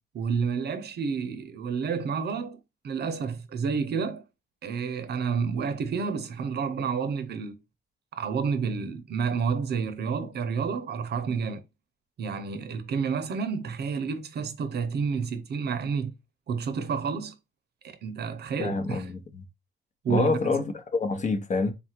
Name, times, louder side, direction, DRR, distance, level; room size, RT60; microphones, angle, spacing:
voice 1, 0.1-4.2 4.6-7.5 8.1-11.6 12.2-16.1 16.5-17.3 17.8-19.1 20.0-20.6, right 5 dB, 55° right, 0.7 m, -30 dB
voice 2, 18.6-19.4 20.1-21.7, left 4 dB, 40° left, 0.8 m, -27 dB
3.5 x 2.4 x 4.3 m
cardioid pair, 90°, 20 cm